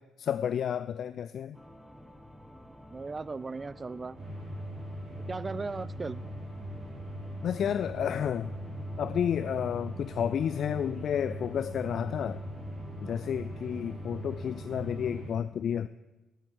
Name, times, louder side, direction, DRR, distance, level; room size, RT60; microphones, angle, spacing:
voice 1, 0.2-1.6 7.4-8.5 9.0-12.4 13.0-15.9, left 9 dB, 60° left, 14 dB, 0.3 m, -31 dB
sound 1, 1.5-15.3, equal, ahead, 1.3 m, -51 dB
voice 2, 2.9-4.2 5.3-6.2, right 4 dB, 35° right, 18 dB, 0.3 m, -37 dB
sound 2, 4.2-15.3, equal, 65° right, 4.0 m, -40 dB
9.0 x 8.1 x 7.9 m, 1.1 s
hypercardioid pair, 45°, 0 cm